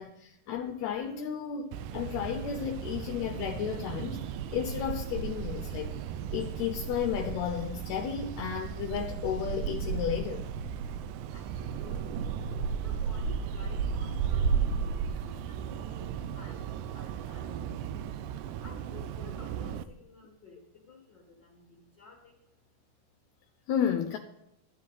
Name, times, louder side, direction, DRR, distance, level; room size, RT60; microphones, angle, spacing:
voice 1, 0.0-6.0 6.3-10.5 23.7-24.2, left 9 dB, 75° left, 1.8 m, -33 dB
sound 1, 1.7-19.8, right 7 dB, 85° right, 2.2 m, -34 dB
voice 2, 11.3-12.3 12.8-14.7 14.9-18.1 18.6-22.9, left 4 dB, 45° left, 1.8 m, -53 dB
12.5 x 10.0 x 3.9 m
omnidirectional pair, 3.6 m